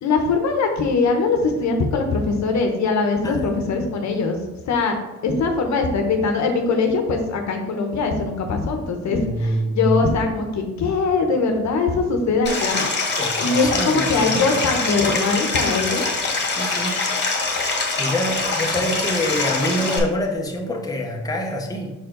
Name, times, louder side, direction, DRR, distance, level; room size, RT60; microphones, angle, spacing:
voice 1, 0.0-4.4 4.6-5.0 5.2-12.9 13.4-16.1, left 4 dB, 65° left, 4 dB, 1.1 m, -21 dB
voice 2, 3.2-3.9 9.1-10.0 13.2-14.6 15.1-15.2 16.6-17.0 17.7-21.9, equal, 10° left, 0 dB, 1.1 m, -26 dB
Stream, 12.4-20.0, left 3 dB, 35° left, 1.6 m, -24 dB
6.0 x 4.6 x 3.9 m, 1.1 s
cardioid pair, 90°, 30 cm